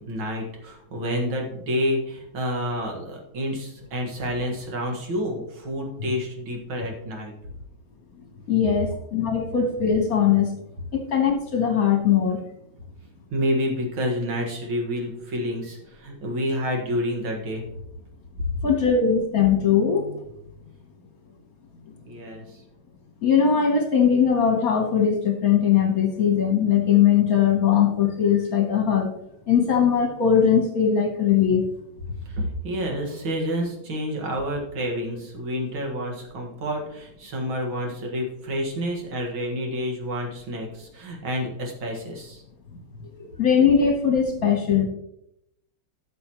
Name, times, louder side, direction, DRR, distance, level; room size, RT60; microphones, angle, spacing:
voice 1, 0.0-7.3 13.3-17.6 22.1-22.6 32.3-42.4, equal, 75° right, 1 dB, 2.5 m, -29 dB
voice 2, 8.5-10.5 10.9-12.4 18.6-20.2 23.2-29.1 29.5-31.7 43.4-44.9, left 7 dB, 50° left, 4 dB, 1.3 m, -20 dB
12.5 x 6.9 x 3.0 m, 0.78 s
omnidirectional pair, 2.2 m